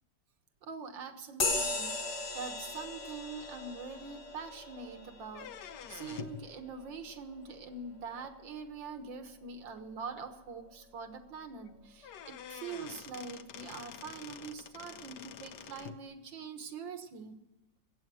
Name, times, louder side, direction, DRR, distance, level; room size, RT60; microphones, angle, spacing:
voice 1, 0.6-2.0 2.3-17.4, right 5 dB, 80° right, 8 dB, 2.1 m, -44 dB
sound 1, 1.4-9.3, left 3 dB, 45° left, 1.7 m, -39 dB
sound 2, 5.3-6.5 8.2-8.3 9.3-9.4 9.8-9.9 10.2-10.3 11.6-11.7 12.0-16.0, left 8 dB, 70° left, 1.4 m, -47 dB
22.0 x 8.7 x 6.2 m, 1.1 s
omnidirectional pair, 2.0 m